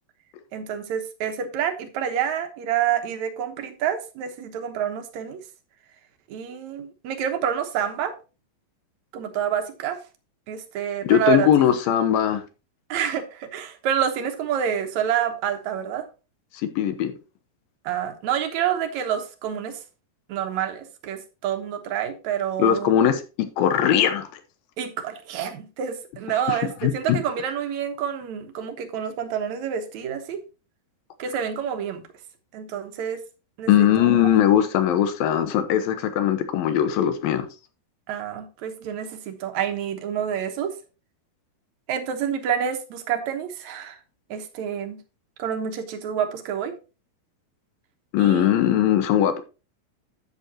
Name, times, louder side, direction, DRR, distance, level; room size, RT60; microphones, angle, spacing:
voice 1, 0.5-5.4 6.3-8.2 9.1-10.0 10.5-11.5 12.9-16.1 17.8-19.8 20.3-22.9 24.8-30.4 31.2-32.0 32.5-33.2 33.6-33.9 38.1-40.7 41.9-44.0 44.3-45.0 45.4-46.8 48.2-48.5, right 9 dB, 65° right, 2.1 m, -28 dB
voice 2, 11.0-12.4 16.6-17.1 22.6-23.2 23.6-24.3 26.5-27.2 33.7-37.5 48.1-49.4, left 10 dB, 80° left, 2.8 m, -20 dB
10.5 x 8.4 x 2.8 m
omnidirectional pair, 4.2 m